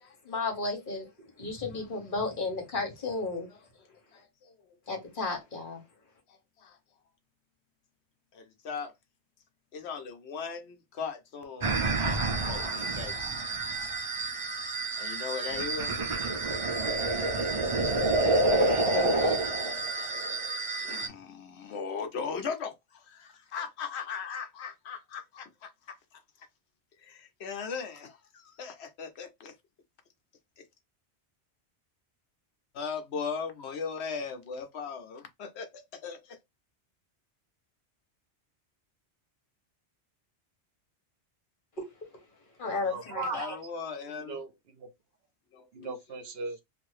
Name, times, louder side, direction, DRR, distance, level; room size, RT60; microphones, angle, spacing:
voice 1, 0.2-1.1 1.4-3.5 4.9-5.8 18.5-18.6 18.9-19.4 41.8-41.9 42.6-43.5, left 3 dB, 50° left, 1.2 m, -33 dB
voice 2, 3.9-4.7 6.3-6.8 8.3-8.9 9.7-13.1 14.9-15.9 20.0-20.4 20.8-26.2 27.0-29.5 30.6-30.7 32.7-36.4 42.7-43.0 43.3-44.4 45.5-45.7 46.1-46.2, left 5 dB, 70° left, 0.9 m, -39 dB
sound 1, 11.6-21.1, right 2 dB, 40° right, 0.5 m, -28 dB
voice 3, 42.7-43.6 44.2-44.9 45.7-46.6, right 3 dB, 65° right, 0.8 m, -38 dB
2.6 x 2.5 x 3.1 m
omnidirectional pair, 1.2 m